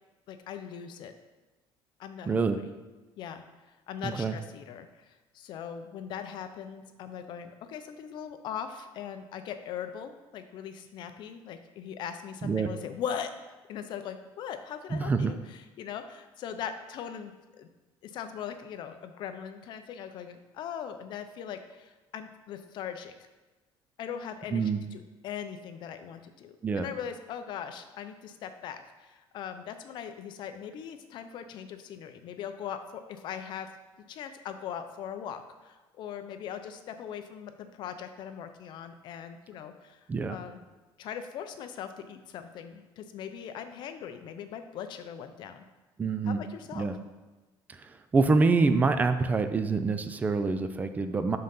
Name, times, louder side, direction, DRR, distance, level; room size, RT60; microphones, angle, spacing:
voice 1, 0.3-1.1 2.0-2.3 2.6-2.7 3.2-3.4 3.9-13.3 13.7-17.7 18.0-23.1 24.0-33.7 34.1-40.0 40.3-40.6 41.0-45.6 46.2-46.9, left 8 dB, 50° left, 8 dB, 0.5 m, -40 dB
voice 2, 2.3-2.6 4.0-4.3 12.4-12.7 14.9-15.3 24.5-24.8 26.6-26.9 40.1-40.4 46.0-46.4 46.7-47.0 48.1-51.4, right 4 dB, 15° right, 9 dB, 0.3 m, -26 dB
5.5 x 3.8 x 5.5 m, 1.2 s
cardioid pair, 170°, 10 cm